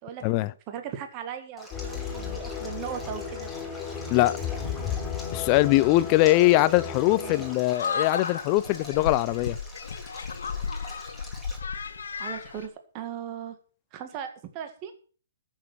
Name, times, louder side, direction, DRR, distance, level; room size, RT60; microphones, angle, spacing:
voice 1, 0.0-3.5 7.1-7.4 12.2-13.6 13.9-14.9, right 9 dB, 35° right, 1.9 m, -38 dB
Stream, 1.6-11.6, left 1 dB, ahead, 4.0 m, -46 dB
sound 1, 1.7-7.6, left 7 dB, 20° left, 5.5 m, -34 dB
voice 2, 5.3-9.6, left 18 dB, 35° left, 0.5 m, -22 dB
sound 2, 7.7-12.7, left 5 dB, 75° left, 1.7 m, -33 dB
14.0 x 7.4 x 6.1 m
hypercardioid pair, 135°, 0 cm